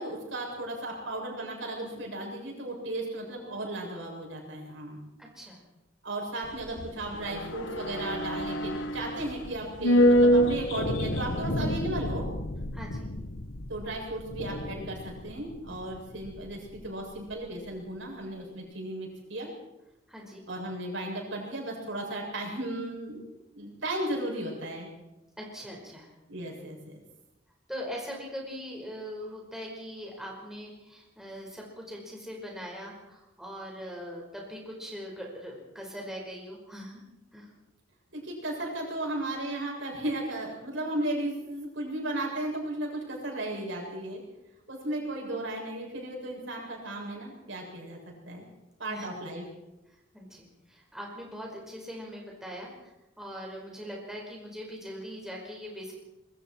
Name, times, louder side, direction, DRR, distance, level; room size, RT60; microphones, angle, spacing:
voice 1, 0.0-5.0 6.0-12.3 13.7-19.5 20.5-23.2 23.5-24.9 26.3-27.0 38.1-44.2 44.7-48.0 48.3-48.5 48.8-49.4, right 1 dB, 75° right, -1 dB, 7.4 m, -35 dB
voice 2, 5.2-5.6 12.7-13.1 20.1-20.4 25.4-26.1 27.7-37.0 37.3-37.5 48.9-49.1 49.9-55.9, equal, 5° right, -2 dB, 5.2 m, -41 dB
sound 1, 6.4-16.9 17.2-17.3, equal, 80° left, 1.5 m, -28 dB
25.5 x 22.0 x 4.6 m, 0.96 s
head